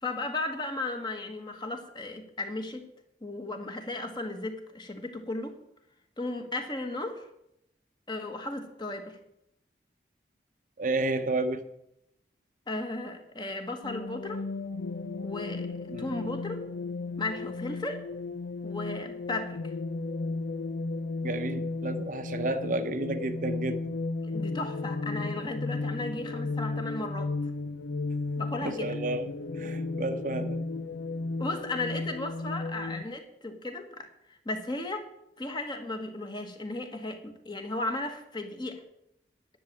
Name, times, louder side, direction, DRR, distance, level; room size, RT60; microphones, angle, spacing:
voice 1, 0.0-2.8 3.2-5.6 6.2-7.3 8.1-9.2 12.7-14.4 15.2-16.6 17.2-18.1 18.6-19.7 24.2-27.5 28.4-28.9 31.4-35.1 35.4-38.8, left 2 dB, 25° left, 5 dB, 1.5 m, -35 dB
voice 2, 10.8-11.6 15.9-16.3 21.2-24.0 25.8-25.9 28.6-30.6, right 2 dB, 45° right, 8 dB, 0.8 m, -32 dB
sound 1, 13.8-33.0, left 3 dB, 80° left, 0.6 m, -34 dB
11.0 x 7.3 x 9.0 m, 0.81 s
head